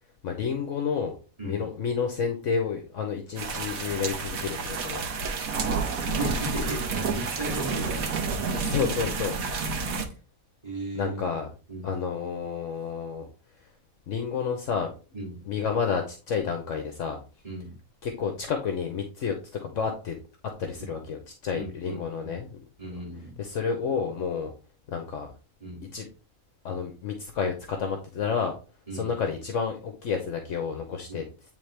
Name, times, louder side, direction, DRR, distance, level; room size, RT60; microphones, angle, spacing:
voice 1, 0.2-1.2 1.4-5.0 8.5-9.4 9.8-10.0 10.9-11.5 11.8-13.3 14.1-14.9 15.5-17.2 18.0-20.2 20.6-22.6 23.4-24.5 24.9-25.3 25.9-26.0 26.6-28.5 28.9-31.2, left 6 dB, 65° left, 4 dB, 1.1 m, -30 dB
sound 1, 3.4-10.1, right 4 dB, 80° right, 1.4 m, -30 dB
voice 2, 6.0-8.2 10.6-11.2 11.7-11.9 15.1-15.4 17.4-17.7 20.9-21.0 21.5-22.4 22.8-23.4 25.6-25.8 28.9-29.1 31.1-31.2, right 1 dB, 25° right, -3 dB, 2.8 m, -36 dB
8.8 x 3.6 x 3.2 m, 0.35 s
omnidirectional pair, 1.5 m